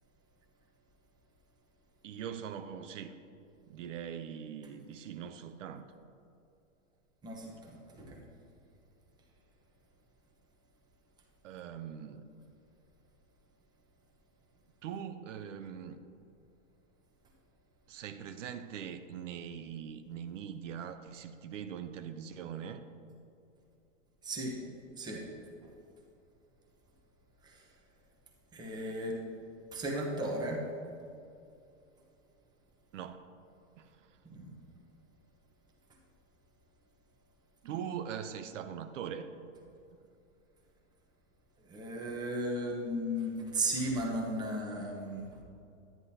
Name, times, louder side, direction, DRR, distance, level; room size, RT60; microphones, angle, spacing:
voice 1, 2.0-3.2 3.7-5.9 11.4-12.3 14.8-16.0 17.9-22.8 32.9-33.3 33.8-34.2 37.6-39.3, right 8 dB, 75° right, 9 dB, 0.7 m, -42 dB
voice 2, 7.2-8.3 24.2-24.6 25.0-25.3 25.6-25.7 27.4-27.7 28.5-29.2 29.7-30.7 34.2-34.6 41.6-45.4, right 1 dB, 10° right, -1 dB, 1.0 m, -35 dB
10.5 x 10.0 x 2.8 m, 2.6 s
hypercardioid pair, 150°, 38 cm